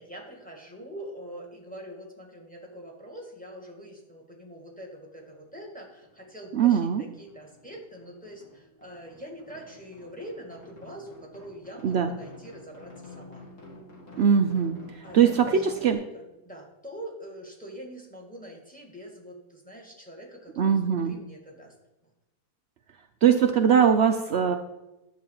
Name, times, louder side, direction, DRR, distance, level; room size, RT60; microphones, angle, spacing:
voice 1, 0.0-13.4 15.0-21.8 22.0-22.1, equal, 5° left, 0 dB, 1.9 m, -44 dB
sound 1, 4.7-4.8 5.2-6.4 6.6-15.9, left 2 dB, 45° left, 2.3 m, -49 dB
voice 2, 6.5-7.0 11.8-12.1 14.2-16.0 20.6-21.2 23.2-24.6, right 7 dB, 75° right, 6 dB, 0.6 m, -21 dB
10.0 x 4.7 x 7.4 m, 0.96 s
omnidirectional pair, 1.8 m